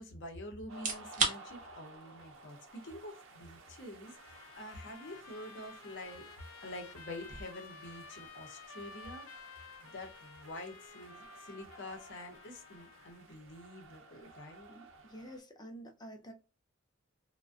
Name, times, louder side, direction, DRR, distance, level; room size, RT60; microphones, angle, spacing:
voice 1, 0.0-6.3 6.6-9.5 9.8-14.7, left 1 dB, 65° left, 0.7 m, -47 dB
sound 1, 0.7-15.5, right 4 dB, 40° right, 0.6 m, -45 dB
sound 2, 0.7-15.4, right 3 dB, 90° right, 0.6 m, -56 dB
Trumpet, 4.1-13.3, left 4 dB, 90° left, 0.4 m, -53 dB
voice 2, 14.7-16.3, equal, 20° left, 0.5 m, -49 dB
2.4 x 2.1 x 2.3 m
head